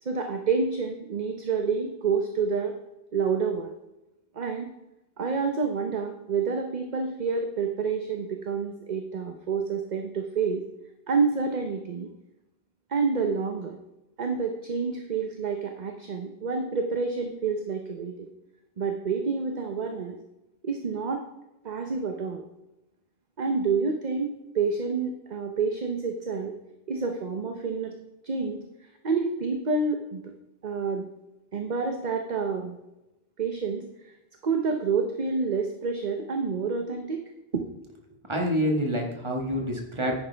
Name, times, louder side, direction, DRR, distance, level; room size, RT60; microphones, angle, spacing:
voice 1, 0.0-2.7 3.1-3.7 4.3-4.7 5.2-10.6 11.1-12.1 12.9-13.8 14.2-18.3 18.8-20.2 20.6-21.2 21.6-22.4 23.4-26.5 26.9-28.0 28.2-28.6 29.0-30.3 30.6-31.1 31.5-32.8 33.4-34.1 34.4-37.2 37.5-37.6, right 5 dB, 50° right, 4 dB, 0.9 m, -28 dB
voice 2, 38.3-40.2, equal, 30° right, 1 dB, 1.7 m, -27 dB
10.0 x 9.7 x 3.4 m, 0.96 s
omnidirectional pair, 1.0 m